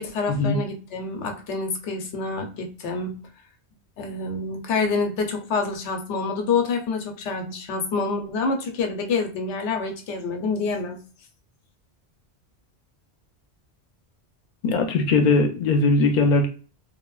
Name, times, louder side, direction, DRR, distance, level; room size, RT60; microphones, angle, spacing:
voice 1, 0.0-3.2 4.0-11.0, left 4 dB, 90° left, 4 dB, 0.9 m, -27 dB
voice 2, 14.6-16.5, left 3 dB, 55° left, 4 dB, 0.6 m, -20 dB
3.0 x 2.0 x 2.3 m, 0.38 s
omnidirectional pair, 1.1 m